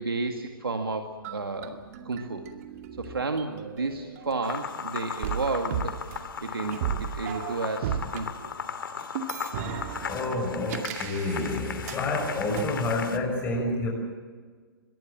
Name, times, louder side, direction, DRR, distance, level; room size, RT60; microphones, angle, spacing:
voice 1, 0.0-2.4 3.0-8.5, right 3 dB, 75° right, 5 dB, 2.1 m, -32 dB
sound 1, 1.2-4.8 5.2-8.2 9.2-12.0 12.6-12.7, right 8 dB, 40° right, 2.2 m, -36 dB
sound 2, 4.4-13.2, left 6 dB, 65° left, 2.4 m, -37 dB
voice 2, 10.0-13.9, left 2 dB, 15° left, -1 dB, 6.4 m, -29 dB
24.5 x 22.5 x 7.5 m, 1.5 s
figure-of-eight pair, 120°, 12 cm